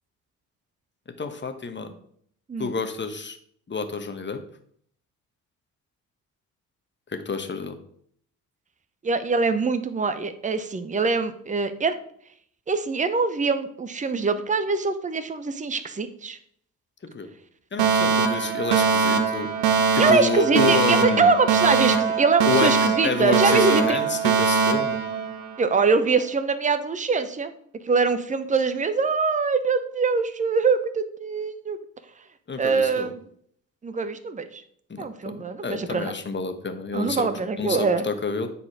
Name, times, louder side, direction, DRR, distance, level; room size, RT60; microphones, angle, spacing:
voice 1, 1.2-1.9 2.6-3.4 3.7-4.4 7.1-7.8 17.1-17.3 17.7-19.5 19.9-21.3 22.5-22.7 23.0-25.0 32.5-33.1 34.9-37.3 37.6-38.5, left 4 dB, 25° left, 7 dB, 1.2 m, -28 dB
voice 2, 9.0-12.0 12.7-16.4 20.0-24.0 25.6-27.5 27.8-31.8 32.6-33.2 33.8-34.6 35.0-36.1 36.9-38.1, right 4 dB, 15° right, 11 dB, 0.8 m, -23 dB
Alarm, 17.8-25.8, right 5 dB, 70° right, 1.0 m, -22 dB
9.8 x 4.2 x 4.8 m, 0.65 s
figure-of-eight pair, 45°, 44 cm